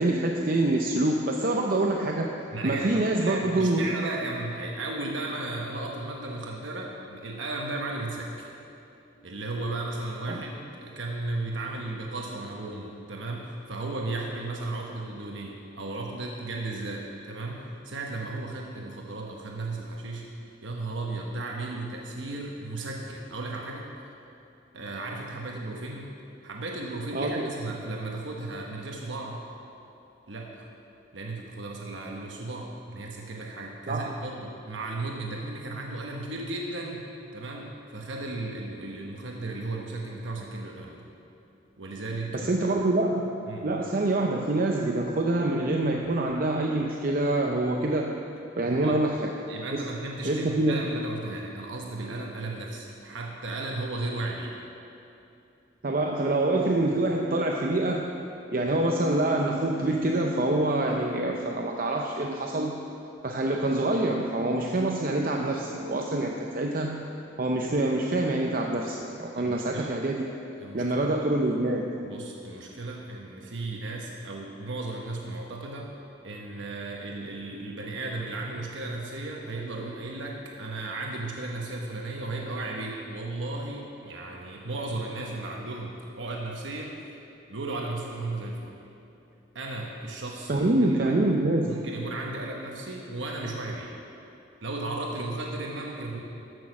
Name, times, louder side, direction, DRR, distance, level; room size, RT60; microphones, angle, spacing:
voice 1, 0.0-2.3 2.6-3.9 10.3-10.4 27.1-27.5 33.9-34.2 42.3-43.3 43.6-48.2 48.6-49.3 49.7-49.8 50.2-50.8 55.8-58.1 58.5-62.8 63.2-67.0 67.4-70.3 70.7-72.0 90.5-91.8, right 2 dB, 45° right, 1 dB, 0.6 m, -26 dB
voice 2, 2.5-8.6 9.2-20.3 20.6-23.9 24.7-26.1 26.4-29.5 30.3-30.7 31.1-37.0 37.3-41.1 41.8-42.5 43.5-43.7 48.6-49.0 49.5-54.5 69.3-70.0 70.6-71.1 72.0-75.9 76.2-86.9 87.5-88.8 89.5-91.2 91.7-93.9 94.6-96.2, right 2 dB, 80° right, -1 dB, 1.1 m, -35 dB
14.5 x 6.4 x 6.0 m, 2.7 s
head